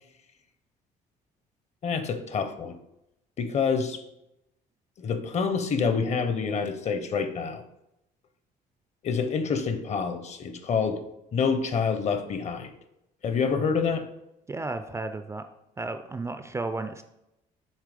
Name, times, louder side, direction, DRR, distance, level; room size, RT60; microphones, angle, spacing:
voice 1, 1.8-2.8 3.4-4.0 5.0-7.6 9.0-11.0 11.3-12.7 13.2-14.1, left 5 dB, 40° left, 9 dB, 0.7 m, -27 dB
voice 2, 14.5-15.5 15.8-17.0, right 3 dB, 15° right, 9 dB, 0.3 m, -33 dB
7.4 x 3.1 x 5.0 m, 0.87 s
cardioid pair, 110°, 17 cm